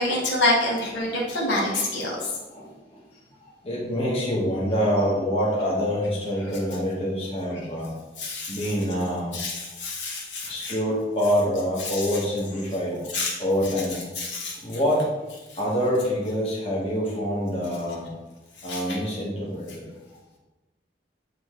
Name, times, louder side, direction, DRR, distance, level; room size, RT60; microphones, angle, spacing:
voice 1, 0.0-2.2 8.2-8.6 9.3-10.7 11.9-12.0 13.1-13.3 14.2-14.6 18.6-19.0, left 2 dB, 85° left, -4 dB, 1.7 m, -27 dB
voice 2, 3.6-7.9 8.5-9.3 10.5-13.1 13.4-14.0 14.6-15.0 15.6-18.1 18.6-19.8, equal, 30° left, -6 dB, 1.4 m, -26 dB
8.7 x 3.2 x 3.7 m, 1.1 s
head